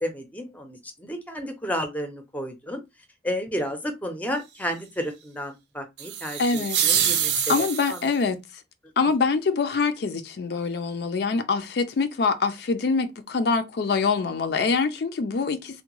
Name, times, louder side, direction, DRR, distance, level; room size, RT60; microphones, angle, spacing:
voice 1, 0.0-2.8 3.2-8.0, equal, 10° left, 0.6 m, -32 dB
sound 1, 6.0-8.2, right 9 dB, 70° right, 0.6 m, -25 dB
voice 2, 6.4-6.8 7.5-8.4 9.0-15.8, left 4 dB, 60° left, 0.4 m, -24 dB
3.5 x 2.2 x 2.9 m
head